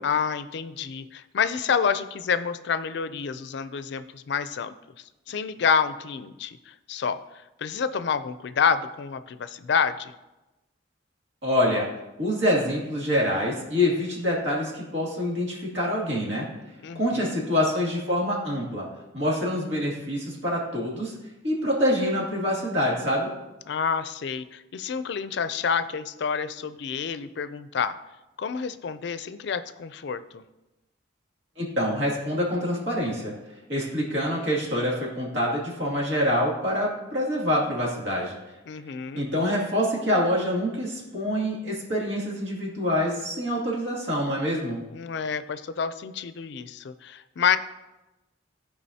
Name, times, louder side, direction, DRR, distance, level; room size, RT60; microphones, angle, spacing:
voice 1, 0.0-4.7 5.3-7.2 7.6-10.1 16.8-17.5 23.7-28.0 28.4-30.4 38.7-39.3 44.9-47.6, left 6 dB, 65° left, 12 dB, 0.4 m, -28 dB
voice 2, 11.4-11.9 12.2-16.5 16.9-18.9 19.1-21.1 21.4-23.3 31.6-33.3 33.7-38.4 39.1-44.8, equal, 70° right, -4 dB, 2.4 m, -26 dB
14.5 x 4.8 x 2.8 m, 1.0 s
head